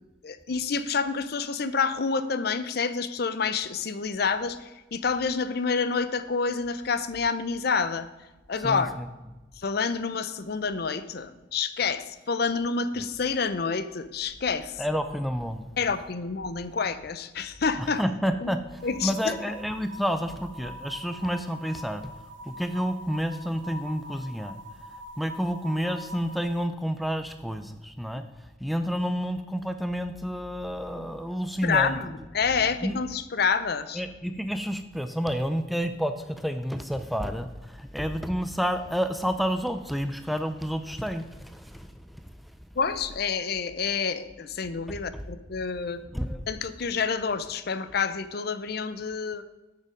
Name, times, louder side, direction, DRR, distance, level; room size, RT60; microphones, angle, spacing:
voice 1, 0.2-8.1 8.5-8.9 9.6-14.7 15.8-18.0 18.4-18.5 18.8-19.4 31.6-34.0 42.8-46.0 46.5-49.4, left 5 dB, 50° left, 13 dB, 0.5 m, -28 dB
voice 2, 8.6-9.1 14.8-15.7 17.8-22.1 22.5-24.6 25.2-28.2 28.6-32.2 32.8-33.0 33.9-42.0 44.9-45.2 46.1-46.4, equal, ahead, 8 dB, 0.4 m, -30 dB
sound 1, 18.8-26.7, equal, 70° right, 0.6 m, -44 dB
8.5 x 6.6 x 5.1 m, 1.1 s
head